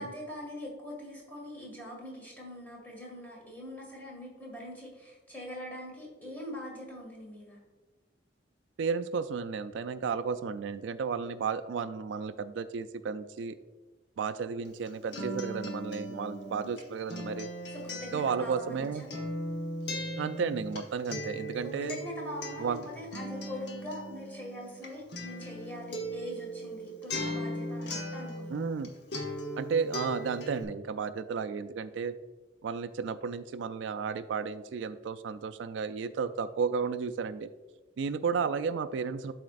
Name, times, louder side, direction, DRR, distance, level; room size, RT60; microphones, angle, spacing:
voice 1, 0.0-7.6 16.4-16.6 17.7-19.1 21.7-28.6, left 1 dB, 10° left, -3 dB, 1.9 m, -42 dB
voice 2, 8.8-13.6 14.2-17.5 18.1-19.0 20.2-22.0 22.6-22.8 28.5-28.9 29.6-32.1 32.6-37.5 38.0-39.3, right 5 dB, 80° right, 11 dB, 0.3 m, -33 dB
Acoustic guitar, 14.6-28.9 29.1-30.6, equal, 65° left, 1.0 m, -38 dB
11.5 x 4.3 x 2.5 m, 1.2 s
head